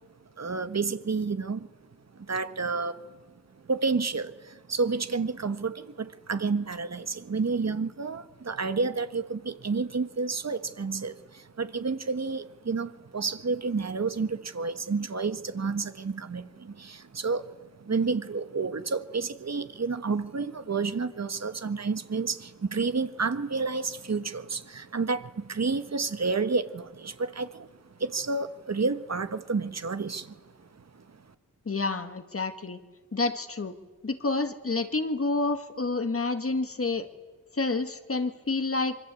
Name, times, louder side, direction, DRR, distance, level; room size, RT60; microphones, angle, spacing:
voice 1, 0.4-1.7 2.2-3.0 3.6-27.7 28.0-30.4 30.9-31.2, right 4 dB, 50° right, 11 dB, 1.4 m, -30 dB
voice 2, 31.7-32.8 33.1-33.8 34.0-37.1 37.5-39.0, left 3 dB, 45° left, 9 dB, 1.9 m, -29 dB
25.5 x 25.0 x 8.4 m, 1.3 s
wide cardioid pair, 110°, 33 cm